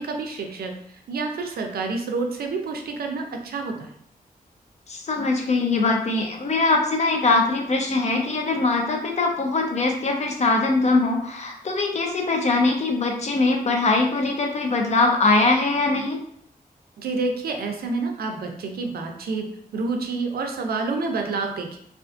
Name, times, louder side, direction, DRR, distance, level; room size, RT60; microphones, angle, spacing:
voice 1, 0.0-3.9 17.0-21.8, right 3 dB, 90° right, 3 dB, 0.4 m, -28 dB
voice 2, 4.9-16.2, left 3 dB, 45° left, 2 dB, 0.4 m, -22 dB
2.4 x 2.4 x 2.4 m, 0.68 s
wide cardioid pair, 125°, 16 cm